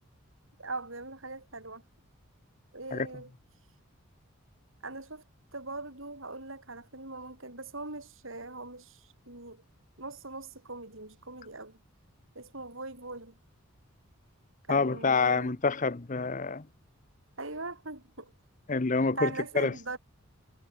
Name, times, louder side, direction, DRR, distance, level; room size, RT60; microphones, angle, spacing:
voice 1, 0.6-1.8 2.7-3.3 4.8-5.2 5.5-9.6 10.0-11.8 12.3-13.4 14.7-15.6 17.4-18.3 19.0-20.0, right 3 dB, 65° right, 6.3 m, -41 dB
voice 2, 14.7-16.7 18.7-19.7, left 4 dB, 35° left, 0.7 m, -27 dB
head